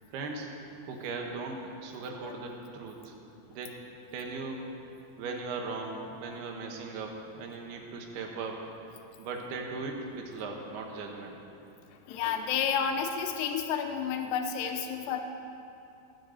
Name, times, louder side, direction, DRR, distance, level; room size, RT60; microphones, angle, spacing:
voice 1, 0.1-0.5 0.9-3.1 3.5-3.7 4.1-4.7 5.2-8.7 9.2-11.4, right 3 dB, 80° right, 2 dB, 3.3 m, -38 dB
voice 2, 12.1-15.2, left 7 dB, 85° left, 5 dB, 3.0 m, -30 dB
18.5 x 6.7 x 8.2 m, 2.7 s
omnidirectional pair, 4.6 m